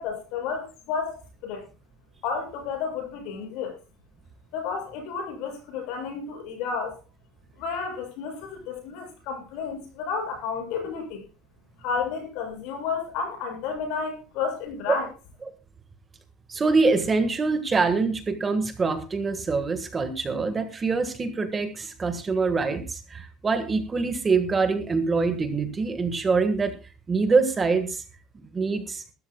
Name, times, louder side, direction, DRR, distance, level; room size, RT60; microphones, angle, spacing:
voice 1, 0.0-1.6 2.2-3.8 4.5-7.0 7.6-11.2 11.8-15.1, left 5 dB, 60° left, 4 dB, 7.5 m, -31 dB
voice 2, 16.5-26.8 27.1-28.0 28.5-29.0, right 4 dB, 15° right, 9 dB, 1.5 m, -24 dB
22.5 x 13.0 x 2.2 m, 0.31 s
cardioid pair, 175°, 0 cm